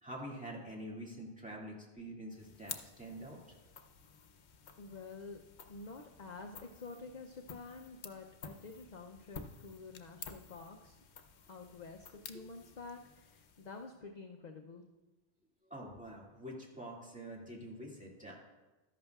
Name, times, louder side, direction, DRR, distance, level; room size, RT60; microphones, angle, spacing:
voice 1, 0.0-3.4 12.3-12.4 15.7-18.4, right 1 dB, 5° right, -5 dB, 2.2 m, -46 dB
sound 1, 2.3-14.0, left 6 dB, 80° left, 1.0 m, -52 dB
voice 2, 4.8-5.4 5.7-11.0 11.5-14.9, left 3 dB, 50° left, 3 dB, 0.6 m, -49 dB
13.5 x 11.0 x 2.3 m, 1.2 s
omnidirectional pair, 1.1 m